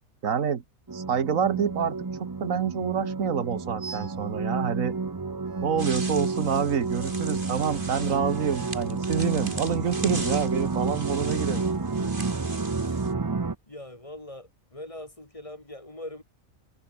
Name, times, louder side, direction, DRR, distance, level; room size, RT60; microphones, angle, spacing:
voice 1, 0.2-0.6 0.9-4.9 5.6-12.2, right 7 dB, 85° right, 1.8 m, -27 dB
sound 1, 0.9-13.6, right 4 dB, 25° right, 0.5 m, -30 dB
sound 2, 3.8-4.3 5.4-6.7 8.0-8.9, right 5 dB, 60° right, 2.0 m, -45 dB
sound 3, 5.8-13.1, right 2 dB, 40° right, 4.5 m, -40 dB
voice 2, 12.8-13.3 13.7-16.2, left 1 dB, 25° left, 2.8 m, -42 dB
omnidirectional pair, 1.4 m